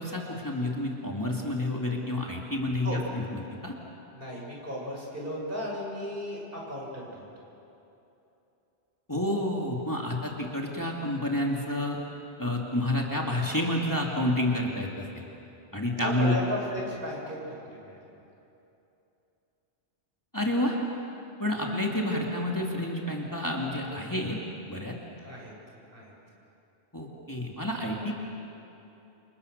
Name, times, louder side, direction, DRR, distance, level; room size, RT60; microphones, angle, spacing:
voice 1, 0.0-3.7 9.1-12.0 12.4-15.2 15.7-16.4 20.3-20.8 21.4-24.4 24.7-25.0 26.9-28.1, left 1 dB, 15° left, -1 dB, 2.6 m, -29 dB
voice 2, 4.1-7.2 16.0-18.0 25.2-25.5 25.9-26.1, equal, 55° right, -3 dB, 6.8 m, -35 dB
29.5 x 27.5 x 6.8 m, 2.9 s
omnidirectional pair, 1.1 m